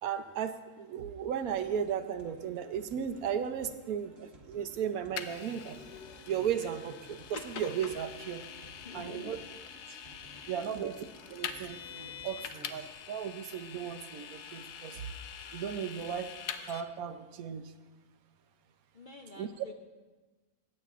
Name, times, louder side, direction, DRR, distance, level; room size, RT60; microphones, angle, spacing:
voice 1, 0.0-5.8 6.3-8.5 8.9-9.4 10.5-10.9 11.3-15.0 15.5-16.3 16.7-17.7 19.4-19.5, right 8 dB, 70° right, 9 dB, 1.1 m, -35 dB
sound 1, 1.5-12.9, right 2 dB, 45° right, 1.3 m, -56 dB
Vehicle, 5.2-16.8, left 8 dB, 90° left, 1.2 m, -44 dB
voice 2, 8.8-9.4 10.3-10.9 18.9-19.7, left 4 dB, 55° left, 3 dB, 0.5 m, -49 dB
25.0 x 9.1 x 2.5 m, 1.3 s
omnidirectional pair, 1.7 m